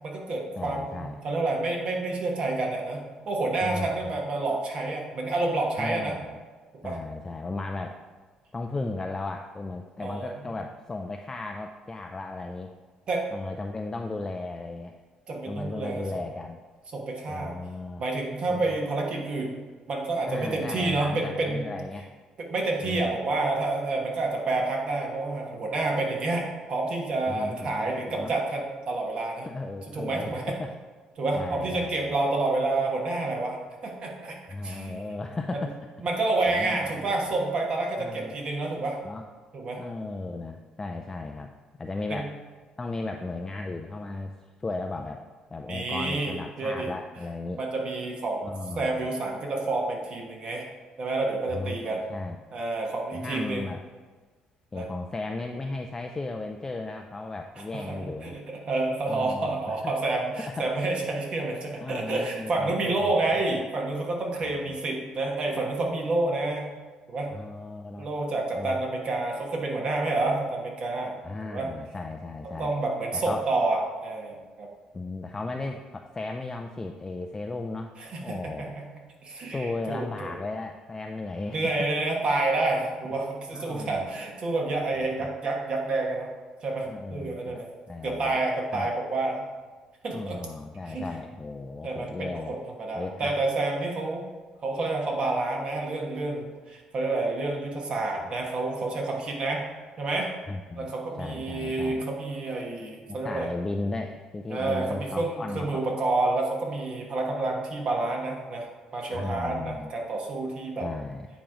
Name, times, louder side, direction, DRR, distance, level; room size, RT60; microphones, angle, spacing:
voice 1, 0.0-6.2 6.8-7.0 10.0-10.3 13.1-13.3 15.3-16.2 16.9-17.6 18.0-21.8 22.5-29.5 29.9-30.4 31.2-34.4 34.6-34.9 35.5-35.7 36.0-39.0 39.5-39.8 42.1-42.3 45.7-46.9 47.6-48.5 48.7-50.7 51.0-52.0 52.5-53.6 54.7-54.9 57.7-66.7 67.1-67.3 68.0-71.2 71.4-71.7 72.6-74.7 78.0-78.8 79.2-80.4 81.5-86.3 86.6-87.7 88.0-89.4 90.0-90.4 90.9-91.1 91.8-94.2 94.6-99.6 100.0-100.3 100.8-103.5 104.5-110.9, right 2 dB, 45° right, 0 dB, 1.4 m, -29 dB
voice 2, 0.6-1.2 3.6-4.1 5.8-6.4 6.8-8.0 8.5-12.7 13.3-14.9 15.5-16.6 17.3-18.0 18.5-18.7 20.2-22.1 22.8-23.2 27.3-28.3 29.5-30.7 31.3-32.2 34.5-35.7 36.5-37.4 38.0-38.4 39.0-39.2 39.8-41.5 41.8-42.3 42.8-45.2 45.5-47.6 48.4-49.1 51.5-52.4 53.1-53.8 54.7-58.4 59.1-59.9 60.4-60.7 61.8-63.6 64.4-64.7 67.3-68.1 68.5-68.8 71.2-72.8 73.1-73.5 74.9-78.7 79.5-81.7 83.0-83.1 83.5-84.1 86.8-88.4 88.7-88.9 90.1-92.6 92.9-93.4 100.5-100.9 101.2-102.1 103.1-106.0 109.1-109.9 110.8-111.3, left 3 dB, 20° left, 4 dB, 0.4 m, -36 dB
8.8 x 3.0 x 4.9 m, 1.4 s
cardioid pair, 105°, 2 cm